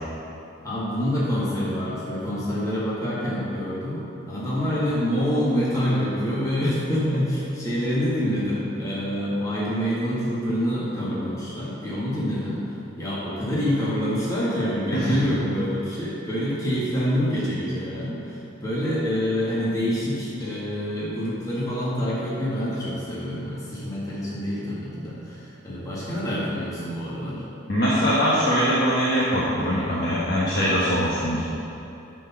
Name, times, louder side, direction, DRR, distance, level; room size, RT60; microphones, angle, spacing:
voice 1, 0.6-12.7 13.0-27.4, equal, 15° left, -8 dB, 1.7 m, -26 dB
voice 2, 27.7-31.4, equal, 50° left, -8 dB, 1.2 m, -22 dB
9.3 x 4.5 x 5.8 m, 2.8 s
head